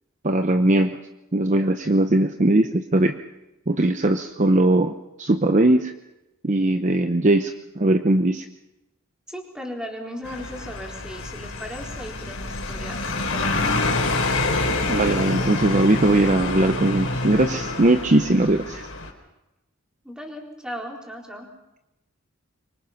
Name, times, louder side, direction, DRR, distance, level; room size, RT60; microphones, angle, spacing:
voice 1, 0.2-1.0 1.3-3.2 3.7-4.9 5.2-5.9 6.4-8.5 14.9-18.8, right 1 dB, 35° right, 7 dB, 0.8 m, -20 dB
voice 2, 9.3-14.0 20.0-21.5, equal, 5° right, -1 dB, 4.1 m, -37 dB
sound 1, 10.2-19.1, left 2 dB, 70° left, 4.1 m, -27 dB
24.5 x 24.5 x 5.8 m, 0.93 s
head